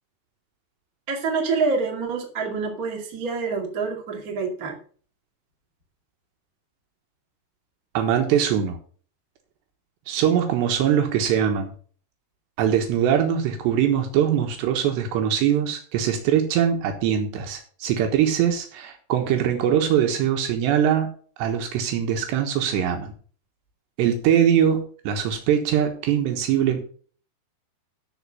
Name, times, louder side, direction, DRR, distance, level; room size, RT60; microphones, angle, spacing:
voice 1, 1.1-4.8, right 4 dB, 30° right, 1 dB, 1.9 m, -26 dB
voice 2, 7.9-8.8 10.1-11.7 12.6-21.1 21.4-23.1 24.0-26.8, right 9 dB, 80° right, 4 dB, 3.4 m, -22 dB
13.0 x 5.2 x 5.5 m, 0.43 s
omnidirectional pair, 4.9 m